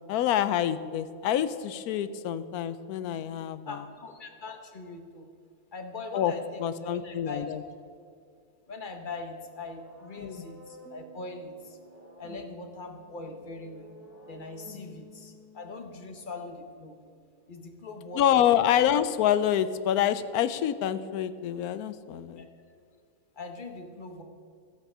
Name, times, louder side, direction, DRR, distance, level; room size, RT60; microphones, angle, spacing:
voice 1, 0.1-3.8 6.1-6.3 6.6-7.6 10.2-10.4 12.3-12.4 14.7-14.8 18.2-22.5, left 10 dB, 85° left, 14 dB, 1.1 m, -27 dB
voice 2, 3.7-5.3 5.7-7.4 8.7-11.8 12.2-13.9 14.2-17.1 17.5-18.8 22.4-22.5 23.4-24.2, left 3 dB, 40° left, 5 dB, 1.0 m, -41 dB
sound 1, 8.9-16.7, equal, 10° left, 1.2 m, -52 dB
12.5 x 8.4 x 5.5 m, 2.3 s
omnidirectional pair, 1.6 m